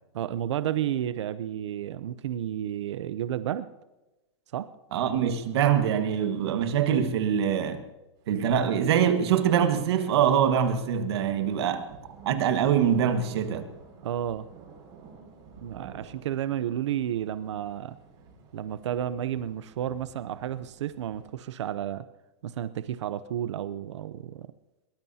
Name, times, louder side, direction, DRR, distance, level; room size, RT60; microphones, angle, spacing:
voice 1, 0.1-3.7 4.5-4.7 14.0-14.5 15.6-17.9 18.5-22.1 22.4-24.5, right 10 dB, 80° right, 13 dB, 0.7 m, -31 dB
voice 2, 4.9-7.8 8.3-11.8 12.2-13.7, right 8 dB, 65° right, 8 dB, 1.6 m, -24 dB
sound 1, 8.2-21.4, right 5 dB, 35° right, 5.7 m, -51 dB
22.0 x 19.0 x 2.8 m, 1.0 s
supercardioid pair, 155°, 15 cm